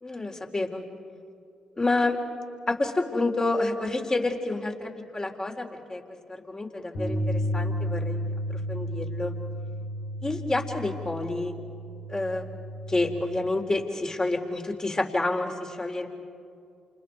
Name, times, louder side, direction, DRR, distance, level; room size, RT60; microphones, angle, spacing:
voice 1, 0.0-0.8 1.8-2.2 2.7-6.0 6.3-9.3 10.2-11.5 12.1-12.4 12.9-16.1, left 2 dB, 30° left, 2 dB, 3.8 m, -29 dB
sound 1, 6.9-13.2, equal, 85° left, 6.6 m, -32 dB
29.0 x 28.5 x 4.8 m, 2.4 s
hypercardioid pair, 45°, 2 cm